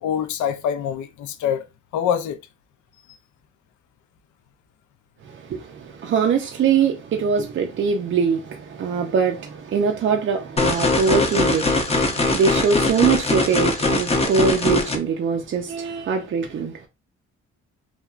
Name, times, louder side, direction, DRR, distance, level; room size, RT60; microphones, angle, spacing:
voice 1, 0.0-1.7 1.9-2.4, left 9 dB, 75° left, 0.5 m, -24 dB
voice 2, 5.2-16.8, right 6 dB, 45° right, 0.5 m, -22 dB
sound 1, 10.6-15.0, left 2 dB, 20° left, 0.6 m, -21 dB
3.1 x 2.2 x 2.4 m
cardioid pair, 90°, 30 cm